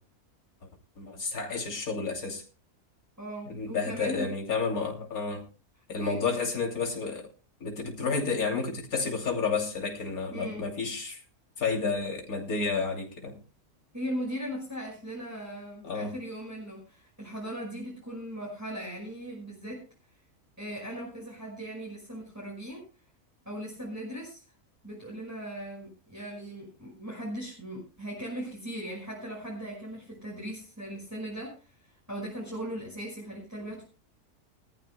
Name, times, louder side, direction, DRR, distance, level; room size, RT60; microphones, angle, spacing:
voice 1, 1.0-2.4 3.5-5.4 5.9-7.3 7.6-11.2 11.6-13.4 15.8-16.1, left 4 dB, 70° left, 3.2 m, -31 dB
voice 2, 3.2-4.3 6.0-6.2 10.3-10.6 13.9-19.8 20.6-22.8 23.5-24.4 24.8-31.7 32.1-33.8, equal, 10° right, 5.4 m, -38 dB
21.5 x 14.0 x 2.2 m
omnidirectional pair, 1.6 m